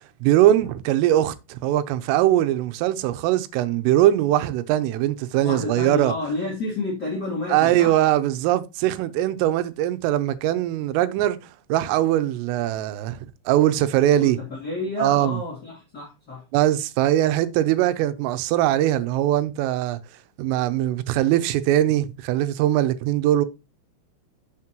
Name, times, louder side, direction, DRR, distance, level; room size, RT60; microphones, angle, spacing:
voice 1, 0.2-6.1 7.5-11.4 11.7-13.2 13.5-14.4 15.0-15.4 16.5-20.0 20.4-23.5, right 13 dB, 90° right, 3.4 m, -21 dB
voice 2, 5.4-8.0 14.1-16.4, left 2 dB, 30° left, 2.3 m, -30 dB
9.6 x 7.3 x 3.0 m
omnidirectional pair, 5.8 m